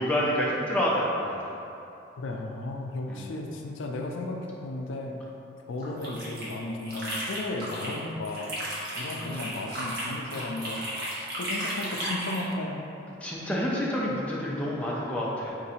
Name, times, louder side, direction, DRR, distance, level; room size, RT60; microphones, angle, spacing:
voice 1, 0.0-1.5 3.1-3.2 9.1-9.3 13.2-15.5, equal, 5° left, -6 dB, 0.4 m, -28 dB
voice 2, 2.2-5.2 5.7-8.5 9.0-12.8, left 2 dB, 80° left, 1 dB, 0.4 m, -34 dB
sound 1, 5.8-8.0 8.3-12.5, right 1 dB, 50° right, 0.9 m, -34 dB
3.7 x 2.5 x 4.1 m, 2.9 s
head